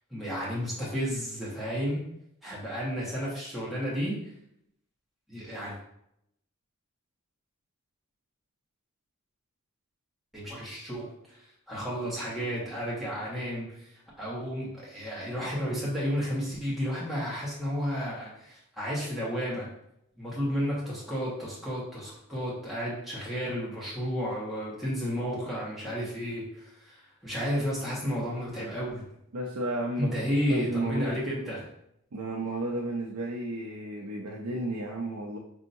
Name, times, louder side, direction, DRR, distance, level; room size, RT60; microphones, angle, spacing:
voice 1, 0.1-2.0 2.4-4.1 5.3-5.8 10.3-19.7 20.2-29.0 30.0-31.6, equal, ahead, -8 dB, 1.2 m, -32 dB
voice 2, 29.3-30.1 30.5-31.2 32.1-35.4, right 1 dB, 75° right, -1 dB, 0.5 m, -33 dB
5.4 x 2.8 x 2.6 m, 0.76 s
head